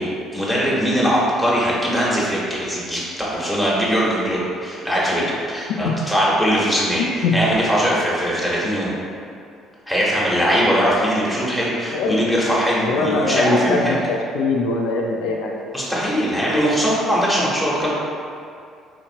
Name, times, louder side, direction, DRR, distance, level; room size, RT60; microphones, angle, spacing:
voice 1, 0.0-8.9 9.9-14.0 15.7-17.9, equal, 5° right, -7 dB, 1.2 m, -21 dB
voice 2, 12.8-15.5, left 3 dB, 80° left, -1 dB, 0.4 m, -21 dB
4.2 x 2.8 x 2.9 m, 2.4 s
supercardioid pair, 75°, 0 cm